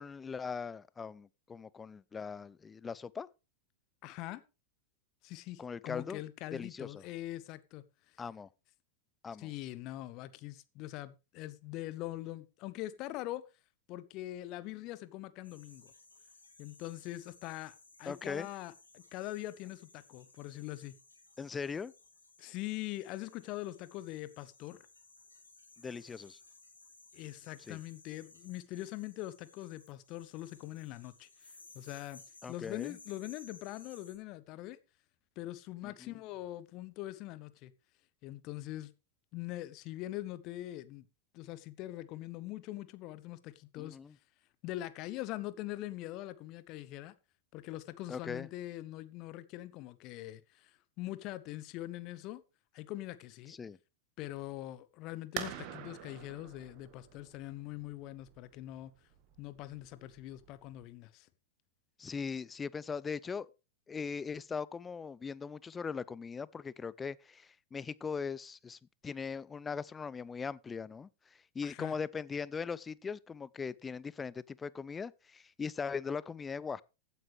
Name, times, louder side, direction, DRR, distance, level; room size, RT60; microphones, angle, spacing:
voice 1, 0.0-3.3 5.6-6.2 6.5-7.0 8.2-8.5 9.2-9.5 18.1-18.5 21.4-21.9 25.8-26.4 27.7-27.8 32.4-33.0 35.8-36.1 43.8-44.1 48.1-48.5 53.5-53.8 62.0-63.5 63.9-71.1 71.5-76.8, left 5 dB, 15° left, 0.5 m, -40 dB
voice 2, 4.0-4.4 5.2-7.8 9.4-13.4 13.9-15.9 16.6-20.9 22.4-24.8 27.1-31.3 31.7-32.2 32.5-34.8 35.4-37.7 38.2-38.9 39.3-41.0 41.3-44.0 44.6-47.1 47.5-52.4 52.7-53.6 54.2-58.9 59.4-61.3 71.6-71.9, left 16 dB, 40° left, 1.0 m, -43 dB
sound 1, 15.4-34.2, left 3 dB, 80° left, 4.6 m, -59 dB
sound 2, 55.4-60.8, right 10 dB, 40° right, 1.6 m, -46 dB
15.5 x 9.4 x 3.4 m
figure-of-eight pair, 90°, 0 cm